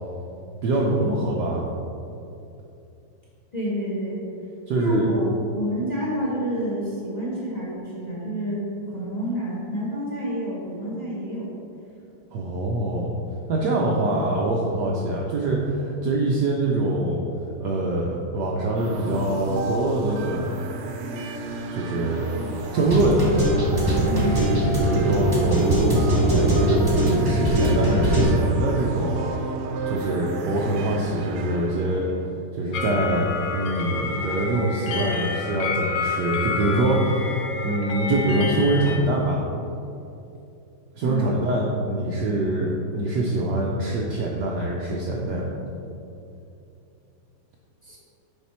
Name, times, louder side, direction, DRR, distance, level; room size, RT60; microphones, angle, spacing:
voice 1, 0.6-1.6 4.7-5.1 12.3-13.1 13.5-17.2 17.6-20.5 21.7-22.2 22.6-23.2 24.7-26.8 27.3-29.3 29.8-32.0 32.5-37.4 37.6-39.4 41.0-45.4, right 2 dB, 70° right, -2 dB, 1.0 m, -24 dB
voice 2, 3.5-4.2 4.7-11.5 24.0-24.6 41.0-41.4 47.8-48.0, equal, 25° left, -6 dB, 1.1 m, -28 dB
sound 1, 18.8-32.3, right 3 dB, 90° right, 1.6 m, -33 dB
sound 2, 22.0-28.2, right 1 dB, 15° right, 0.9 m, -21 dB
sound 3, 32.7-39.0, left 4 dB, 65° left, 1.3 m, -29 dB
6.8 x 5.0 x 4.3 m, 2.7 s
omnidirectional pair, 2.4 m